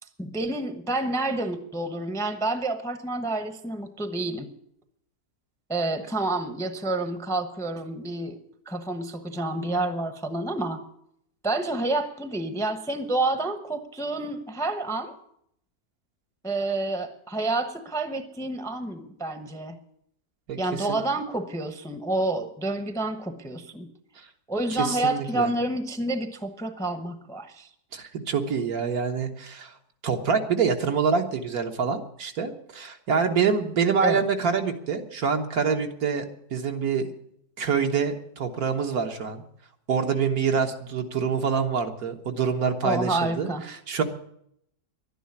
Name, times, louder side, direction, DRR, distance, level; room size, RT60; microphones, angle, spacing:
voice 1, 0.2-4.5 5.7-8.4 8.7-10.8 11.4-15.1 16.4-19.8 20.6-23.9 24.5-27.7 34.0-34.2 42.8-43.6, right 2 dB, 5° left, 9 dB, 0.8 m, -29 dB
voice 2, 20.5-21.0 24.2-24.3 24.7-25.5 27.9-29.7 30.0-36.3 36.5-37.1 37.6-39.4 39.9-44.0, right 6 dB, 70° right, 4 dB, 1.8 m, -26 dB
11.5 x 10.0 x 9.6 m, 0.71 s
omnidirectional pair, 1.7 m